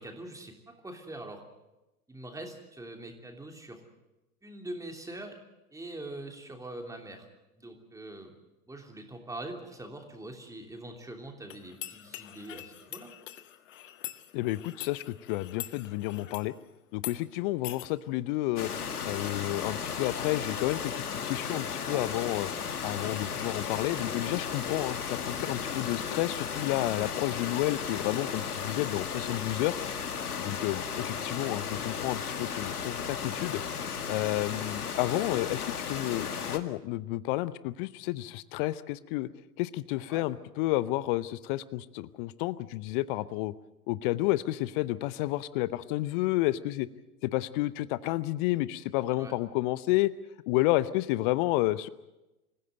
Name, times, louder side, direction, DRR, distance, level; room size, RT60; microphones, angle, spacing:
voice 1, 0.0-1.4 2.1-3.8 4.4-5.4 5.7-7.3 7.6-8.3 8.7-13.1 21.8-22.1 40.1-40.3 49.1-49.4, right 1 dB, 5° right, 4 dB, 3.1 m, -43 dB
sound 1, 11.5-16.5 16.9-17.2 17.6-17.9, left 13 dB, 55° left, 1.7 m, -43 dB
voice 2, 14.3-16.5 16.9-18.7 19.0-22.5 22.8-29.8 30.4-33.6 34.1-39.3 39.6-43.5 43.9-46.9 47.2-50.1 50.5-51.9, left 17 dB, 35° left, 18 dB, 0.7 m, -30 dB
sound 2, 18.6-36.6, left 6 dB, 75° left, 2.0 m, -35 dB
26.5 x 16.0 x 7.9 m, 0.98 s
figure-of-eight pair, 100°, 45 cm